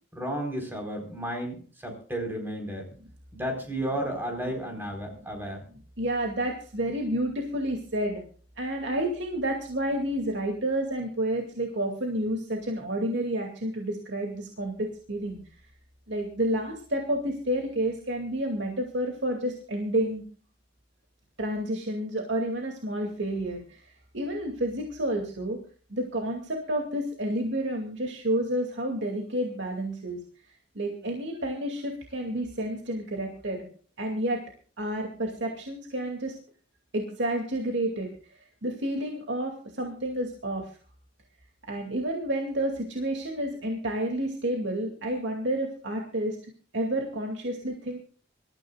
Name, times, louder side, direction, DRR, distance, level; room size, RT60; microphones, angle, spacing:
voice 1, 0.1-2.9 3.3-5.6, right 1 dB, 10° right, 2 dB, 4.3 m, -33 dB
voice 2, 3.5-4.8 5.2-5.3 6.0-8.2 8.6-15.4 16.1-20.2 21.4-23.8 24.1-25.6 25.9-30.2 30.7-33.6 34.0-34.4 34.8-36.4 36.9-40.7 41.7-46.4 46.7-48.0, right 1 dB, 70° right, 2 dB, 2.5 m, -30 dB
25.5 x 14.0 x 2.4 m, 0.41 s
head